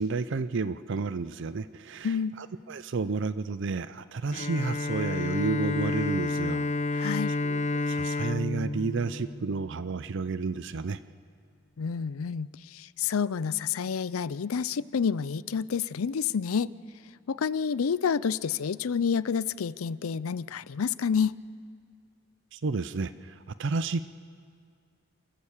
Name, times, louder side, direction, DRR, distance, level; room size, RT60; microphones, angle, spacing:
voice 1, 0.0-6.7 6.9-7.1 7.4-11.0 22.5-24.0, right 4 dB, 60° right, 14 dB, 0.5 m, -31 dB
voice 2, 2.0-2.3 7.0-7.3 11.8-16.7 17.3-21.4, left 6 dB, 85° left, 18 dB, 0.5 m, -29 dB
Bowed string instrument, 4.3-10.0, left 2 dB, 35° left, 0.6 m, -30 dB
28.0 x 15.0 x 7.3 m, 2.2 s
head